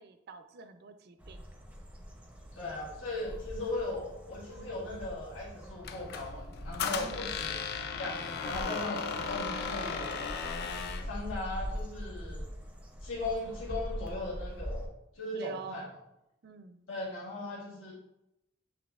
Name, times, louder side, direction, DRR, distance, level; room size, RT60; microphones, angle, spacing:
voice 1, 0.0-1.4 7.0-7.3 15.3-15.8 16.4-16.8, right 6 dB, 55° right, 8 dB, 0.4 m, -46 dB
sound 1, 1.2-14.9, equal, 5° right, 0.5 m, -43 dB
voice 2, 2.5-10.1 11.0-12.5 13.0-14.9 15.1-15.9 16.9-17.9, left 2 dB, 80° left, -6 dB, 1.3 m, -38 dB
Squeak, 5.8-11.1, left 5 dB, 55° left, 0.4 m, -36 dB
7.1 x 3.0 x 2.3 m, 0.87 s
head